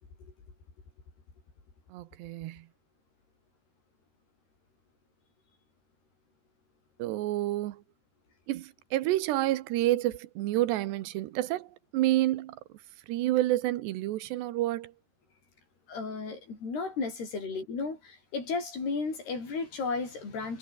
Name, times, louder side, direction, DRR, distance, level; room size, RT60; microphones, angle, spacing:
voice 1, 1.9-2.7 7.0-7.8 8.5-12.6 13.1-14.9, right 15 dB, 80° right, 3.2 m, -29 dB
voice 2, 15.9-20.6, left 4 dB, 65° left, 9.9 m, -34 dB
omnidirectional pair, 5.0 m